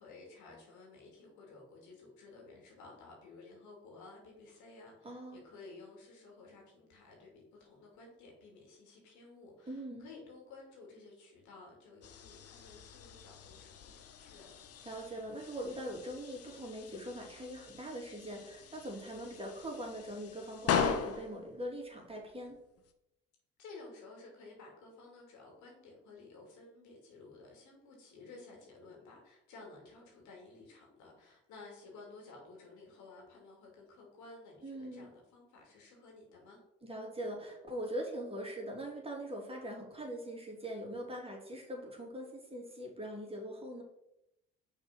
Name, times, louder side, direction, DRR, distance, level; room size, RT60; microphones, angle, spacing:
voice 1, 0.0-14.6 23.6-36.6, left 3 dB, 70° left, 0 dB, 2.6 m, -54 dB
voice 2, 5.0-5.4 9.7-10.1 14.8-22.6 34.6-35.1 36.8-43.8, equal, 20° right, -1 dB, 2.6 m, -42 dB
sound 1, 12.0-22.9, left 6 dB, 50° left, 0.9 m, -40 dB
6.0 x 4.2 x 5.8 m, 0.85 s
hypercardioid pair, 55°, 30 cm